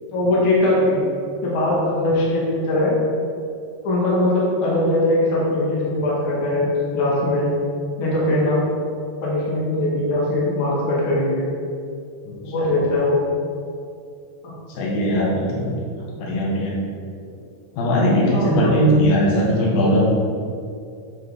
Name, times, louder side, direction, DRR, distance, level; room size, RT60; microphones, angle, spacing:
voice 1, 0.1-1.0 1.4-2.9 3.8-7.5 8.0-8.6 9.2-11.5 12.4-13.2 14.4-14.6 18.3-18.8, left 1 dB, 45° left, -6 dB, 2.3 m, -20 dB
voice 2, 14.8-15.7 16.2-16.8 17.8-20.1, equal, 80° left, -4 dB, 3.1 m, -19 dB
8.9 x 5.0 x 4.7 m, 2.4 s
omnidirectional pair, 4.1 m